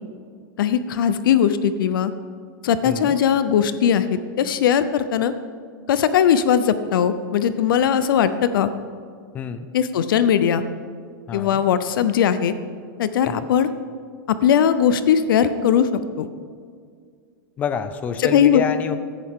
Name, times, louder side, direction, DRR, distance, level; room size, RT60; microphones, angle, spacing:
voice 1, 0.6-2.1 2.6-5.3 5.9-8.7 9.7-10.6 11.3-12.5 13.0-13.7 14.3-15.9 16.2-16.3 18.2-18.6, left 8 dB, 70° left, 13 dB, 0.6 m, -19 dB
voice 2, 2.8-3.2 9.3-9.7 11.3-11.6 13.3-13.5 17.6-19.0, left 7 dB, 15° left, 11 dB, 0.4 m, -28 dB
16.5 x 10.5 x 3.7 m, 2.1 s
supercardioid pair, 175°, 12 cm